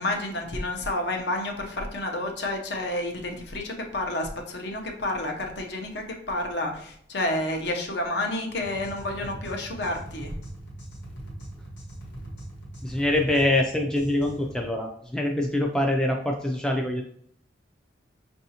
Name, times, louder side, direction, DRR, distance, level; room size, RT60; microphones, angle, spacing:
voice 1, 0.0-10.3, left 1 dB, 65° left, 3 dB, 0.8 m, -30 dB
sound 1, 8.6-14.7, right 1 dB, 80° left, 1.2 m, -41 dB
voice 2, 12.8-17.0, left 1 dB, 5° left, 1 dB, 0.3 m, -24 dB
5.5 x 2.6 x 2.8 m, 0.65 s
head